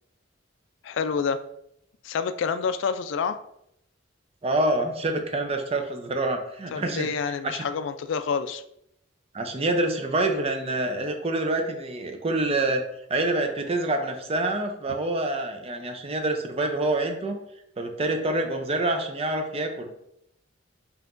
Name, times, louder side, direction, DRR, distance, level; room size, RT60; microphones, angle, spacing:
voice 1, 0.8-1.4 2.0-3.4 6.7-8.6, left 6 dB, 65° left, 10 dB, 0.3 m, -28 dB
voice 2, 4.4-7.6 9.3-12.8 13.1-17.4 17.8-19.9, right 2 dB, 30° right, 4 dB, 0.5 m, -26 dB
5.6 x 2.9 x 2.5 m, 0.76 s
head